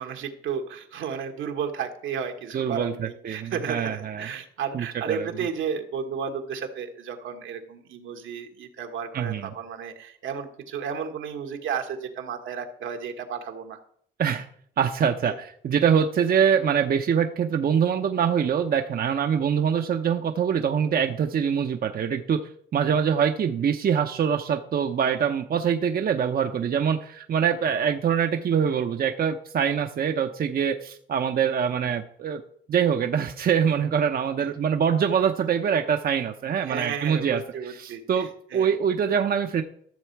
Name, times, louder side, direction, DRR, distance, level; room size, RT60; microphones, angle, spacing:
voice 1, 0.0-13.8 15.2-15.4 34.4-34.5 36.7-38.7, right 6 dB, 80° right, 5 dB, 1.5 m, -33 dB
voice 2, 2.5-4.3 4.7-5.3 9.1-9.5 14.2-14.5 14.8-22.4 22.7-32.4 32.7-39.6, right 7 dB, 50° right, 6 dB, 0.8 m, -24 dB
13.5 x 6.9 x 4.6 m, 0.63 s
cardioid pair, 90°, 20 cm